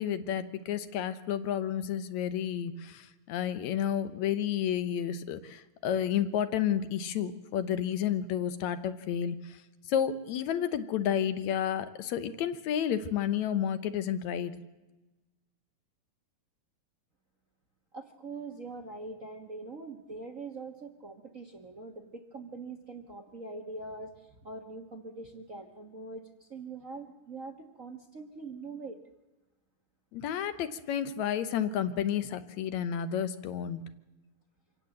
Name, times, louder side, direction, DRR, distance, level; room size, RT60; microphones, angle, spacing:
voice 1, 0.0-9.6 9.9-14.5 30.1-33.8, left 9 dB, 75° left, 12 dB, 2.2 m, -31 dB
voice 2, 17.9-29.0, right 3 dB, 40° right, 5 dB, 1.2 m, -43 dB
26.0 x 17.0 x 7.8 m, 1.1 s
omnidirectional pair, 3.3 m